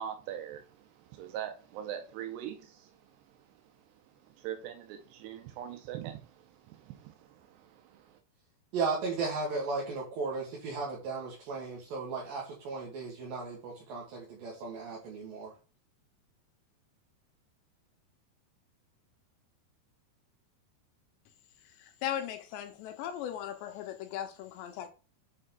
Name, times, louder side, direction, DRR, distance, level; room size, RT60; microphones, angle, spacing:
voice 1, 0.0-8.2, right 10 dB, 85° right, 2.9 m, -43 dB
voice 2, 8.7-15.5, right 4 dB, 60° right, 3.2 m, -35 dB
voice 3, 21.8-24.9, left 10 dB, 85° left, 3.3 m, -38 dB
8.5 x 4.4 x 3.9 m
omnidirectional pair, 4.9 m